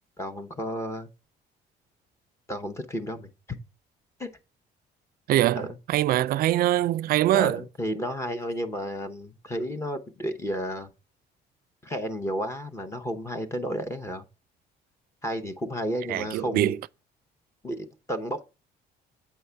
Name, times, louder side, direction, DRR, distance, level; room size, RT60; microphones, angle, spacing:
voice 1, 0.2-1.1 2.5-3.6 4.2-4.3 5.5-5.7 7.3-10.9 11.8-14.3 15.2-16.8 17.6-18.4, equal, 15° left, 0.7 m, -32 dB
voice 2, 5.3-7.6 16.1-16.8, right 13 dB, 60° right, 0.4 m, -23 dB
8.0 x 5.5 x 3.4 m
cardioid pair, 160°, 18 cm